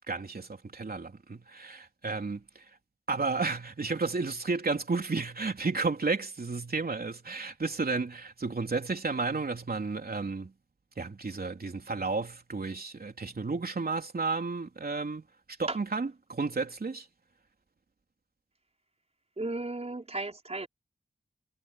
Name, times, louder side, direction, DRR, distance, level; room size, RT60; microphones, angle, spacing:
voice 1, 0.1-2.7 3.1-10.5 11.0-15.3 15.6-17.1, right 4 dB, 55° right, 3.6 m, -32 dB
voice 2, 19.4-20.7, right 2 dB, 35° right, 4.5 m, -34 dB
wide cardioid pair, 95°, 18 cm